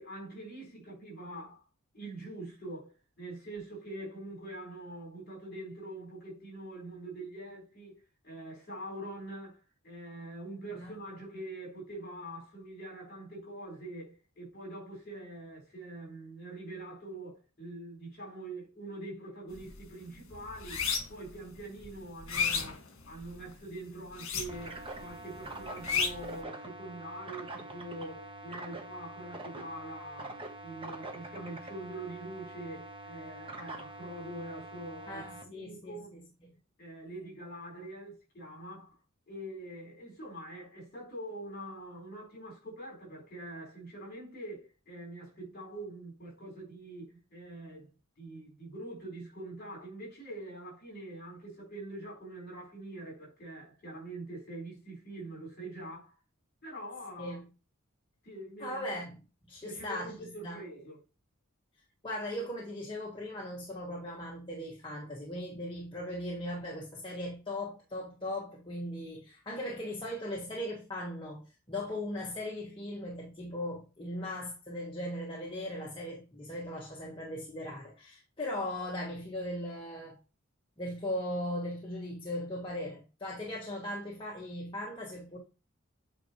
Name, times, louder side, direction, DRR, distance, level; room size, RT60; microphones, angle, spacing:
voice 1, 0.0-1.6 1.9-9.6 9.8-20.8 21.1-36.2 36.8-38.9 39.3-47.9 48.2-56.1 56.6-57.4 58.2-59.0 59.6-61.0, right 1 dB, 45° left, 4.3 m, -44 dB
sound 1, 19.5-19.8 20.2-21.3 21.8-23.5 24.1-24.9 25.1-26.4, left 6 dB, 65° left, 1.7 m, -32 dB
sound 2, 24.5-35.4, right 2 dB, 25° right, 1.0 m, -45 dB
voice 2, 35.1-36.0 57.2-57.4 58.6-59.2 59.5-60.1 60.4-60.6 62.0-80.2 80.8-85.4, left 1 dB, 25° left, 1.5 m, -38 dB
8.6 x 4.6 x 3.1 m
head